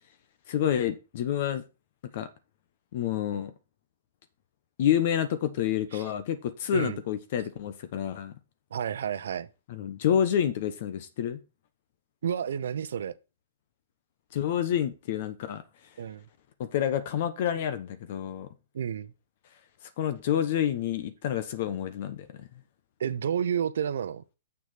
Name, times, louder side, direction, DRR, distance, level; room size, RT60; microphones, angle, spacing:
voice 1, 0.5-1.6 2.1-2.3 2.9-3.5 4.8-8.3 9.7-11.4 14.3-15.6 16.6-18.5 20.0-22.3, left 10 dB, 55° left, 1.1 m, -28 dB
voice 2, 8.7-9.5 12.2-13.1 16.0-16.2 18.7-19.1 23.0-24.2, right 8 dB, 70° right, 0.8 m, -30 dB
7.2 x 6.1 x 5.8 m
hypercardioid pair, 125°, 0 cm